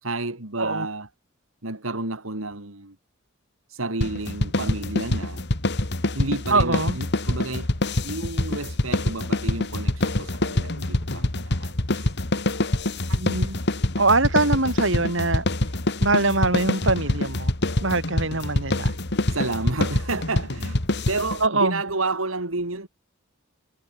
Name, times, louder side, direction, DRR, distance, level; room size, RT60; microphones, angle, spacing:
voice 1, 0.0-1.1 1.6-2.9 3.7-5.4 6.1-7.7 8.0-12.1 19.3-22.9, right 2 dB, 85° right, 3.2 m, -31 dB
sound 1, 4.0-21.5, left 1 dB, 55° left, 2.3 m, -25 dB
voice 2, 6.5-7.0 13.1-13.6 14.0-15.4 16.0-17.5 17.8-19.0 21.4-21.8, right 3 dB, 65° right, 7.3 m, -23 dB
head